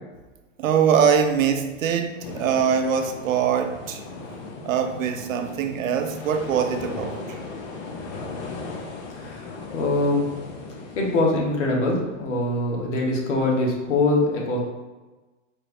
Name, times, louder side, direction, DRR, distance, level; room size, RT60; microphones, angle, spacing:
voice 1, 0.6-4.0 4.6-7.4, right 7 dB, 80° right, 6 dB, 0.6 m, -23 dB
sound 1, 2.2-11.2, left 3 dB, 35° left, 0.6 m, -37 dB
voice 2, 9.2-10.3 10.9-14.6, left 2 dB, 65° left, -1 dB, 1.3 m, -23 dB
4.4 x 3.2 x 2.6 m, 1.2 s
hypercardioid pair, 150°, 39 cm